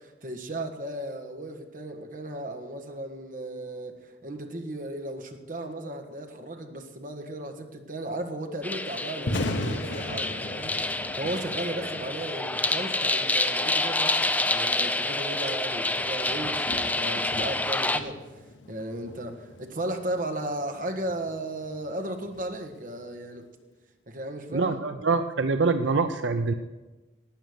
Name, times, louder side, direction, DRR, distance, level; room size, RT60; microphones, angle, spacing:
voice 1, 0.0-18.4 18.7-23.5 24.1-24.9, right 1 dB, 45° right, 4 dB, 1.7 m, -35 dB
sound 1, 8.6-18.0, left 2 dB, 10° left, 0.7 m, -28 dB
Thunder, 9.1-23.3, left 1 dB, 90° left, 1.0 m, -39 dB
voice 2, 24.5-26.5, right 4 dB, 80° right, 9 dB, 0.6 m, -25 dB
12.0 x 9.1 x 9.4 m, 1.2 s
head